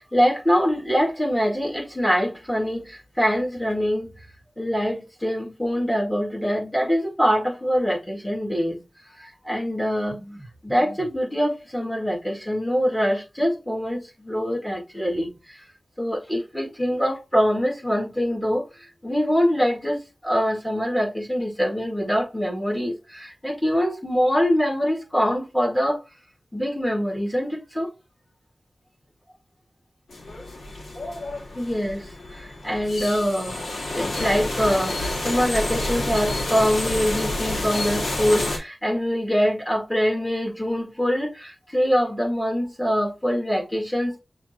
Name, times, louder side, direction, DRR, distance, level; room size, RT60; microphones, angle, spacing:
voice 1, 0.1-2.8 3.2-4.1 4.6-8.8 9.5-10.4 10.6-14.0 14.2-15.3 16.0-18.6 19.0-20.0 20.2-26.0 26.5-27.9 31.6-32.0 32.6-33.6 33.9-34.9 35.2-44.1, equal, 10° left, 2.1 m, -24 dB
sound 1, 30.1-38.6, left 2 dB, 90° left, 1.4 m, -29 dB
6.5 x 2.9 x 2.8 m
wide cardioid pair, 100°, 0 cm